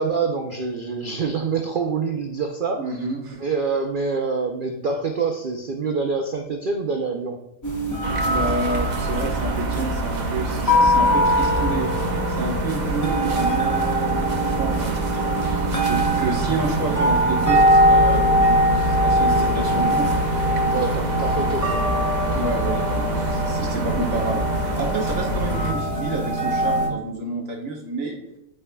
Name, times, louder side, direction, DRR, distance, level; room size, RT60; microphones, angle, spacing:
voice 1, 0.0-3.0 3.4-7.4 20.7-21.8 22.2-22.5, right 4 dB, 85° right, 3 dB, 0.4 m, -26 dB
voice 2, 2.8-3.4 8.3-11.9 12.3-20.1 22.3-28.2, right 3 dB, 60° right, -1 dB, 1.5 m, -29 dB
sound 1, 7.6-26.9, equal, 15° left, 1.1 m, -22 dB
sound 2, 8.0-25.7, right 2 dB, 40° right, 0.6 m, -27 dB
12.0 x 4.4 x 2.3 m, 0.86 s
omnidirectional pair, 1.6 m